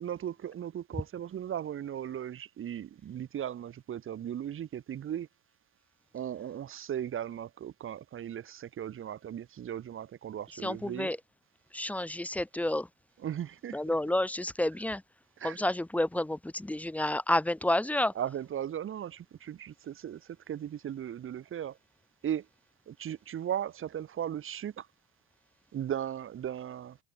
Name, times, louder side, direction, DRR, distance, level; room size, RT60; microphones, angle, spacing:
voice 1, 0.0-5.3 6.1-11.1 13.2-13.9 15.4-15.6 18.1-21.8 22.2-22.5 22.9-24.9 25.7-27.0, right 10 dB, 40° right, 2.9 m, -37 dB
voice 2, 10.6-11.2 11.7-12.9 13.7-15.0 15.4-18.1, left 1 dB, 5° left, 0.8 m, -30 dB
hypercardioid pair, 70°, 32 cm